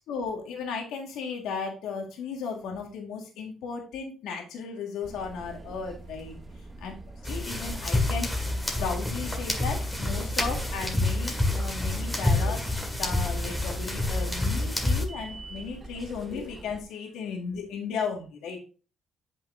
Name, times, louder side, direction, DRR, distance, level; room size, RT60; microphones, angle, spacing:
voice 1, 0.1-6.4 6.8-7.0 7.2-8.3 8.8-12.7 13.0-18.6, left 5 dB, 85° left, 1 dB, 1.8 m, -35 dB
sound 1, 5.0-16.8, right 2 dB, 30° right, 1.0 m, -42 dB
sound 2, 7.2-15.1, left 2 dB, 10° left, 1.9 m, -28 dB
8.3 x 5.5 x 2.6 m, 0.34 s
cardioid pair, 90°, 0 cm